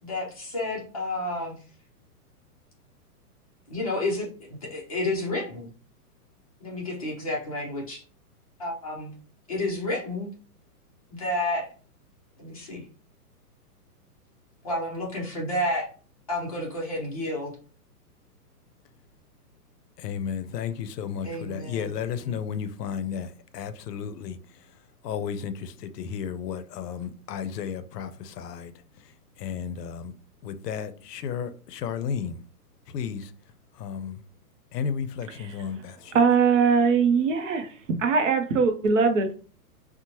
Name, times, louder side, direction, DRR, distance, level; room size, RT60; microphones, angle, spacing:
voice 1, 0.0-1.6 3.7-5.7 6.6-8.0 8.6-9.1 9.5-10.3 11.1-11.6 12.4-12.8 14.6-15.9 16.3-17.5 21.2-21.8 22.3-22.4, left 1 dB, 25° left, 0.5 m, -30 dB
voice 2, 20.0-30.1 30.4-32.4 32.9-33.3 33.7-34.2 34.7-36.2, left 7 dB, 80° left, 0.5 m, -33 dB
voice 3, 36.1-37.7 38.0-39.3, right 5 dB, 55° right, 0.5 m, -21 dB
2.9 x 2.1 x 2.8 m
hypercardioid pair, 165°, 47 cm